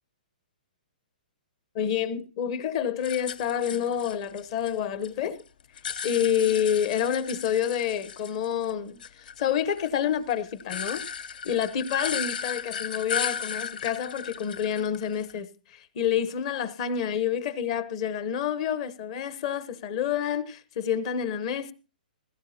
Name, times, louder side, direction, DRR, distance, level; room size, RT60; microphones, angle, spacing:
voice 1, 1.7-5.4 6.0-11.0 11.4-21.7, left 9 dB, 40° left, 1.0 m, -28 dB
sound 1, 3.0-5.1 5.4-8.7 9.0-15.4, left 7 dB, 70° left, 0.7 m, -35 dB
17.0 x 15.5 x 2.8 m
hypercardioid pair, 150°, 5 cm